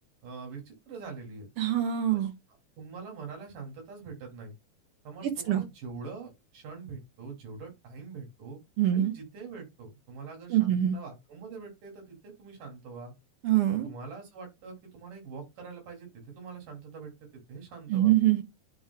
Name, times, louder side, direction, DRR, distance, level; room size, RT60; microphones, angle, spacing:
voice 1, 0.2-1.5 2.1-2.3 2.8-4.5 5.0-8.6 8.9-13.1 13.8-18.2, right 4 dB, 90° right, 4.1 m, -44 dB
voice 2, 1.6-2.3 5.5-5.6 8.8-9.1 10.5-11.0 13.4-13.9 17.9-18.4, right 12 dB, 65° right, 1.5 m, -24 dB
11.0 x 4.7 x 2.2 m
omnidirectional pair, 3.6 m